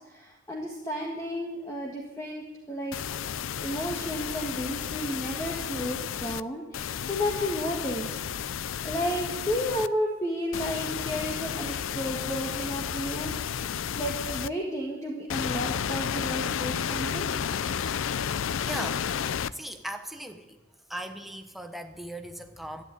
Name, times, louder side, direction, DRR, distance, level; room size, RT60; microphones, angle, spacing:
voice 1, 0.0-3.0 3.6-8.2 8.8-13.3 14.0-17.3, equal, 15° left, -1 dB, 1.6 m, -32 dB
sound 1, 2.9-6.4 6.7-9.9 10.5-14.5 15.3-19.5, left 8 dB, 85° left, 0.4 m, -32 dB
voice 2, 18.6-20.6 20.9-22.8, right 1 dB, ahead, 6 dB, 0.9 m, -39 dB
13.0 x 10.5 x 9.1 m, 1.2 s
head